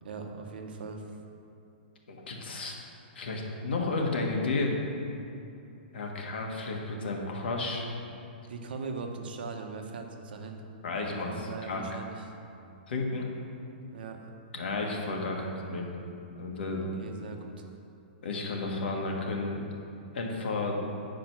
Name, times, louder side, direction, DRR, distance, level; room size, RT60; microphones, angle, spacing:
voice 1, 0.0-1.0 8.4-10.6 10.9-12.3 13.9-14.3 16.7-17.7, right 4 dB, 60° right, 4 dB, 1.0 m, -40 dB
voice 2, 2.1-2.8 3.2-4.7 5.9-7.8 10.8-11.8 12.9-13.3 14.5-15.9 16.4-16.9 18.2-19.7 20.1-20.8, left 3 dB, 70° left, 0 dB, 1.6 m, -32 dB
9.4 x 5.1 x 6.1 m, 2.7 s
hypercardioid pair, 175°, 6 cm